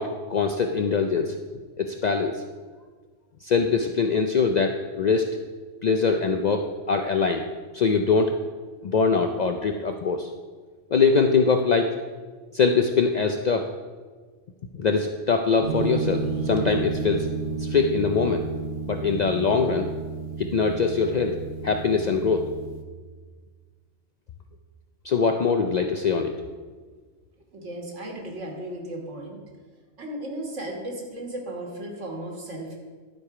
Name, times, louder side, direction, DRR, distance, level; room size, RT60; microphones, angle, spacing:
voice 1, 0.0-1.3 1.8-2.4 3.4-5.3 5.8-7.5 7.7-8.3 8.8-10.3 10.9-11.9 12.5-13.7 14.7-17.3 17.6-18.4 18.9-19.9 20.4-21.4 21.6-22.5 25.0-26.3, left 5 dB, 80° left, 4 dB, 0.3 m, -23 dB
sound 1, 15.6-22.8, right 4 dB, 45° right, 0.9 m, -32 dB
voice 2, 27.5-29.4 30.0-32.8, right 1 dB, 70° right, 0 dB, 1.9 m, -35 dB
11.5 x 4.8 x 4.8 m, 1.5 s
omnidirectional pair, 1.3 m